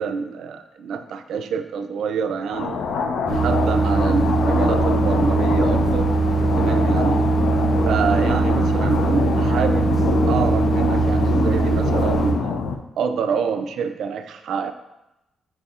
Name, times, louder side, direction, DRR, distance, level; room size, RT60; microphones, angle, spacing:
voice 1, 0.0-2.8 3.3-6.1 6.5-7.3 7.8-10.0 10.3-12.6 13.0-14.7, right 6 dB, 65° right, 8 dB, 0.3 m, -26 dB
sound 1, 2.5-12.8, left 5 dB, 80° left, 0.4 m, -25 dB
sound 2, 3.3-12.3, right 3 dB, 5° right, 1.1 m, -21 dB
5.2 x 4.1 x 2.4 m, 0.93 s
cardioid pair, 165°, 0 cm